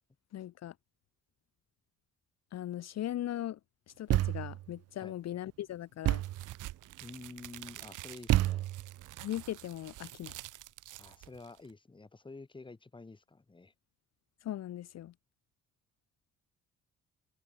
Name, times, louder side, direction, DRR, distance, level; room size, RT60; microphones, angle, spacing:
voice 1, 0.3-0.7 2.5-3.6 4.0-6.2 9.2-10.3 14.4-15.1, left 12 dB, 60° left, 0.8 m, -39 dB
Thump thud, 4.1-4.7 6.0-6.5 8.3-9.0, right 14 dB, 55° right, 0.4 m, -29 dB
sound 1, 6.2-11.7, right 15 dB, 85° right, 2.3 m, -48 dB
voice 2, 7.0-8.7 11.0-13.7, left 3 dB, 15° left, 1.5 m, -49 dB
cardioid pair, 90°, 30 cm